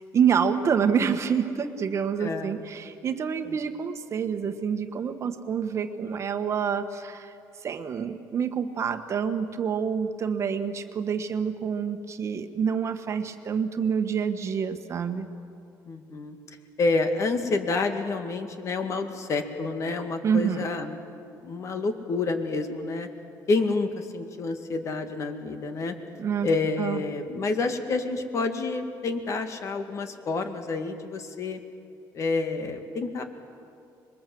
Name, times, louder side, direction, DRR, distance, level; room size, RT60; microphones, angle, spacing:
voice 1, 0.0-7.3 7.6-15.3 20.2-20.7 26.2-26.5 26.8-27.0, right 7 dB, 40° right, 8 dB, 1.4 m, -27 dB
voice 2, 2.2-2.6 3.5-3.6 15.9-16.4 16.8-21.0 21.4-23.1 23.5-25.9 26.4-31.6 32.1-33.2, left 3 dB, 45° left, 6 dB, 2.1 m, -28 dB
26.0 x 22.5 x 7.8 m, 2.5 s
cardioid pair, 130°, 8 cm